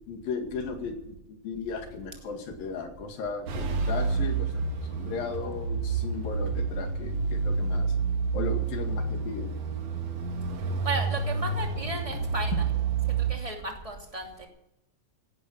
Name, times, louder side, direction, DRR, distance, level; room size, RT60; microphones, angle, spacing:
voice 1, 0.1-4.6 4.9-8.0 8.3-9.5, left 4 dB, 80° left, 5 dB, 3.9 m, -36 dB
sound 1, 3.5-13.3, right 4 dB, 55° right, 2.4 m, -29 dB
voice 2, 10.8-12.7 13.3-14.5, right 3 dB, 10° right, 1 dB, 2.4 m, -34 dB
17.0 x 11.0 x 7.4 m, 0.86 s
omnidirectional pair, 4.0 m